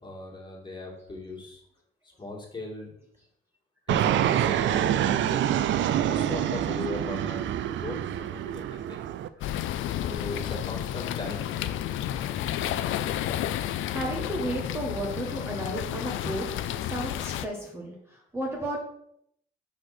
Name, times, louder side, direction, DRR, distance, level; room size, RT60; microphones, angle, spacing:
voice 1, 0.0-1.6 2.2-2.9 3.9-5.4 6.0-7.5 7.7-9.0 10.0-11.8, left 2 dB, 25° left, -3 dB, 2.5 m, -38 dB
Fixed-wing aircraft airplane, 3.9-9.3, right 11 dB, 70° right, 0.5 m, -26 dB
sound 1, 9.4-17.5, left 11 dB, 80° left, 0.5 m, -31 dB
voice 2, 13.9-18.8, right 1 dB, 10° right, -2 dB, 1.4 m, -33 dB
5.1 x 4.1 x 6.0 m, 0.73 s
cardioid pair, 90°, 20 cm